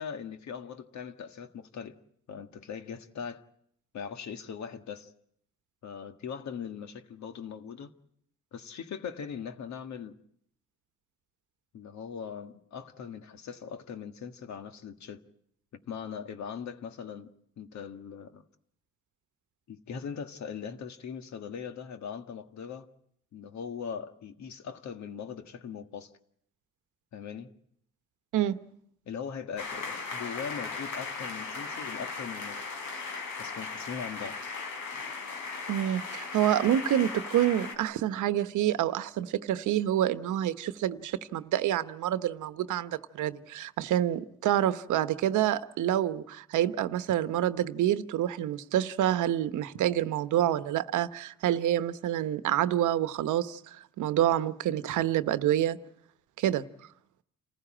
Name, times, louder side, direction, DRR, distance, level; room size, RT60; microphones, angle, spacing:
voice 1, 0.0-2.0 2.3-3.4 3.9-5.1 5.8-7.9 8.5-10.2 11.7-15.2 15.9-17.3 17.6-18.4 19.7-22.9 23.3-26.1 27.1-27.5 29.0-32.6 33.4-34.4, left 7 dB, 65° left, 1.8 m, -40 dB
sound 1, 29.6-37.7, left 4 dB, 85° left, 4.3 m, -37 dB
voice 2, 35.7-55.8 56.4-56.6, right 12 dB, 80° right, 1.0 m, -27 dB
28.0 x 15.0 x 8.8 m
cardioid pair, 90°, 30 cm